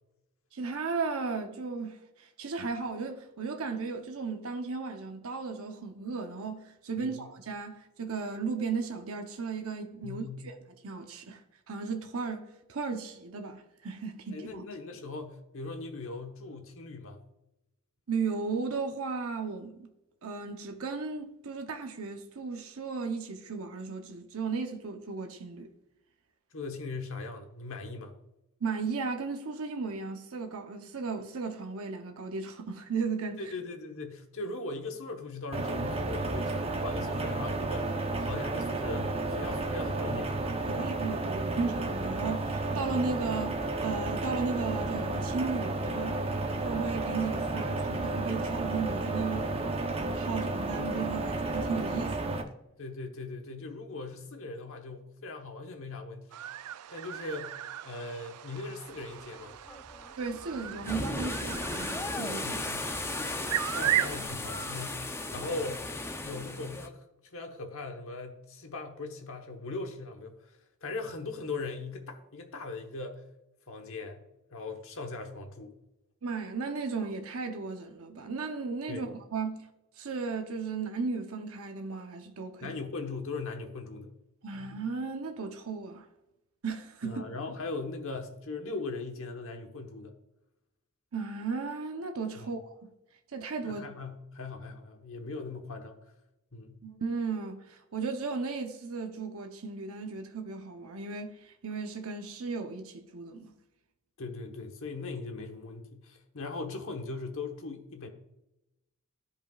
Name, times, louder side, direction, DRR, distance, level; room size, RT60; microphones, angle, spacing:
voice 1, 0.5-10.5 10.8-11.4 11.7-14.6 18.1-19.9 20.2-25.7 28.6-33.4 40.7-46.2 46.6-49.7 49.9-52.4 60.2-62.6 76.2-79.7 80.0-82.8 84.4-86.1 86.6-87.2 91.1-92.7 93.3-93.8 96.8-103.5, right 4 dB, 65° right, 0.8 m, -35 dB
voice 2, 7.0-7.3 10.0-10.5 14.3-17.2 26.5-28.1 33.4-40.4 40.7-40.9 52.8-56.4 56.9-57.5 57.8-59.5 62.4-62.9 63.7-65.9 66.1-70.5 70.8-73.2 73.7-74.2 74.5-75.8 78.9-79.1 82.6-84.1 84.5-84.8 87.0-90.1 92.4-92.5 93.6-96.0 96.5-96.8 104.2-108.1, left 3 dB, 65° left, 1.2 m, -39 dB
sound 1, 35.5-52.4, right 2 dB, 25° right, 0.7 m, -32 dB
sound 2, 56.3-64.3, right 12 dB, 90° right, 0.4 m, -36 dB
sound 3, 59.2-66.9, left 2 dB, 10° left, 0.5 m, -36 dB
13.5 x 5.0 x 2.4 m
head